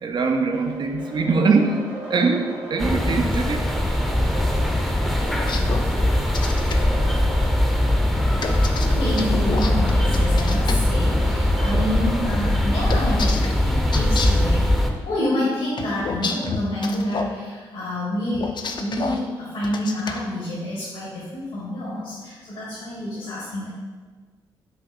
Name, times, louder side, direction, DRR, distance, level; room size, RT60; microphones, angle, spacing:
voice 1, 0.0-3.7 5.4-5.7 7.9-9.0, right 4 dB, 45° right, 0.4 m, -23 dB
sound 1, 0.5-12.5, right 1 dB, 70° right, 1.0 m, -36 dB
sound 2, 2.8-14.9, left 1 dB, ahead, 0.6 m, -21 dB
sound 3, 5.3-6.8 8.4-10.8 12.9-14.5 15.8-17.3 18.3-19.2 19.6-20.2, left 4 dB, 45° left, 0.4 m, -29 dB
voice 2, 8.4-14.7 15.0-18.5 18.8-23.7, left 1 dB, 75° left, 1.1 m, -28 dB
5.5 x 2.6 x 2.4 m
hypercardioid pair, 40°, 11 cm